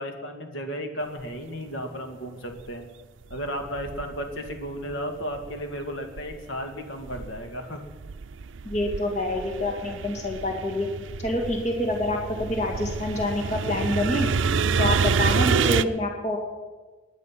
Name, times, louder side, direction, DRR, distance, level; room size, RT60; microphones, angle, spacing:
voice 1, 0.0-2.9 3.3-7.8 14.7-15.2, equal, 80° left, 4 dB, 2.1 m, -34 dB
sound 1, 2.6-2.7 3.3-4.9 5.3-6.6 7.0-15.8, right 5 dB, 75° right, 0.5 m, -28 dB
voice 2, 8.6-10.9 11.2-14.3 14.8-16.4, left 1 dB, 35° left, 1 dB, 2.1 m, -27 dB
20.0 x 9.4 x 5.9 m, 1.3 s
head